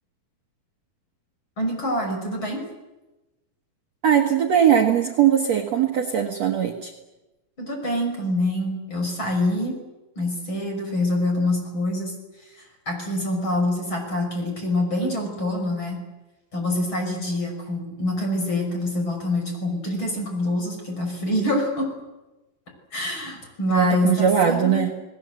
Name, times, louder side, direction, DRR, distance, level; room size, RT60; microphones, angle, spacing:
voice 1, 1.6-2.6 7.6-9.8 10.2-12.1 12.9-16.0 16.5-21.9 22.9-24.8, left 1 dB, 30° left, 3 dB, 6.6 m, -25 dB
voice 2, 4.0-6.9 23.7-24.9, right 8 dB, 55° right, 2 dB, 2.3 m, -20 dB
29.5 x 19.5 x 8.2 m, 1.1 s
omnidirectional pair, 4.3 m